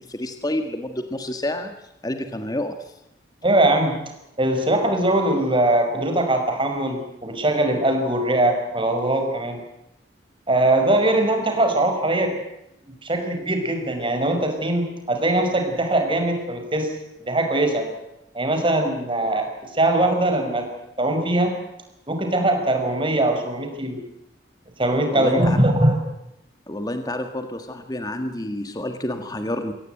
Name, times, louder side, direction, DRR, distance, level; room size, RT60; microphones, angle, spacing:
voice 1, 0.0-1.7 2.0-2.9 25.1-25.6 26.7-29.7, left 1 dB, 20° left, 7 dB, 1.7 m, -29 dB
voice 2, 3.4-4.0 4.4-9.6 10.5-12.3 13.0-16.9 17.2-17.9 18.3-20.7 21.0-21.5 22.1-24.0 24.8-26.0, right 1 dB, 30° right, 5 dB, 5.4 m, -21 dB
24.0 x 17.0 x 9.1 m, 0.83 s
head